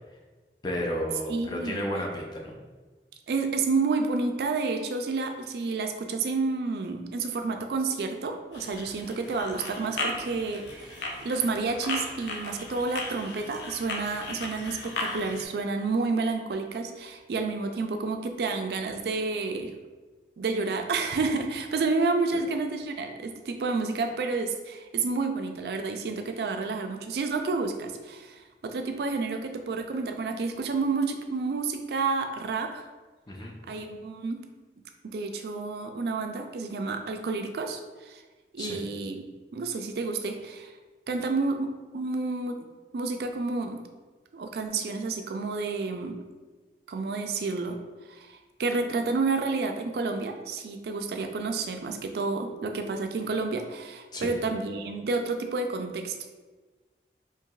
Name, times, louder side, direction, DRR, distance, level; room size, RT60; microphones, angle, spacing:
voice 1, 0.6-2.6 33.3-33.6 38.6-38.8 54.1-54.3, equal, 25° left, 0 dB, 0.5 m, -32 dB
voice 2, 1.3-1.9 3.3-19.7 20.4-32.8 33.7-34.4 35.0-38.2 38.5-39.2 39.5-40.7 41.1-42.7 42.9-43.8 44.3-46.2 46.9-47.8 48.1-56.3, right 3 dB, 65° right, 5 dB, 0.3 m, -30 dB
sound 1, 8.5-15.5, left 2 dB, 80° left, 0.6 m, -36 dB
4.6 x 2.8 x 2.3 m, 1.3 s
head